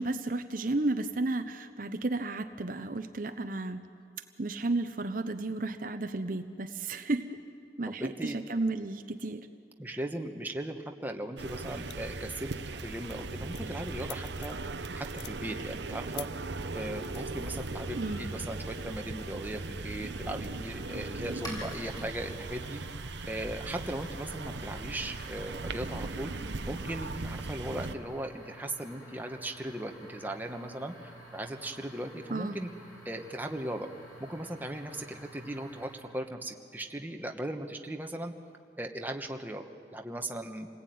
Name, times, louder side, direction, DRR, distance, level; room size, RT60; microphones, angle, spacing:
voice 1, 0.0-3.9 4.4-7.4 7.8-9.5 17.9-18.2 32.3-32.6, right 2 dB, 50° right, 8 dB, 0.8 m, -33 dB
voice 2, 7.9-8.4 9.8-14.6 14.9-16.3 16.7-22.8 23.3-26.3 26.6-32.7 33.0-33.9 34.2-38.3 38.8-40.7, right 1 dB, 10° right, 3 dB, 1.3 m, -38 dB
sound 1, 11.4-28.0, right 3 dB, 85° right, 0.9 m, -38 dB
sound 2, 11.9-12.2 12.6-12.8 13.1-14.7 15.1-15.3 16.1-16.3 17.0-17.2, left 13 dB, 70° left, 0.7 m, -45 dB
sound 3, 16.6-36.2, equal, 20° left, 7.4 m, -50 dB
27.5 x 19.5 x 9.4 m, 2.5 s
head